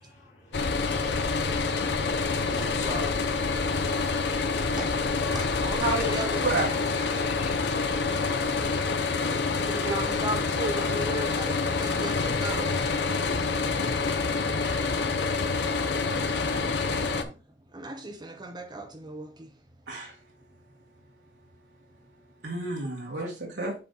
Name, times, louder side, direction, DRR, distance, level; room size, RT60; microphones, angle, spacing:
voice 1, 0.0-4.8 5.9-6.0 7.0-8.1, left 2 dB, 40° left, 2.2 m, -43 dB
sound 1, 0.5-17.2, left 4 dB, 70° left, 0.7 m, -27 dB
voice 2, 5.3-6.6 9.5-12.9 17.0-17.4 17.7-19.5, right 2 dB, 25° right, 0.9 m, -36 dB
voice 3, 15.8-16.8 19.9-20.1 22.4-23.7, right 2 dB, 75° right, 1.7 m, -31 dB
7.5 x 4.2 x 3.8 m
head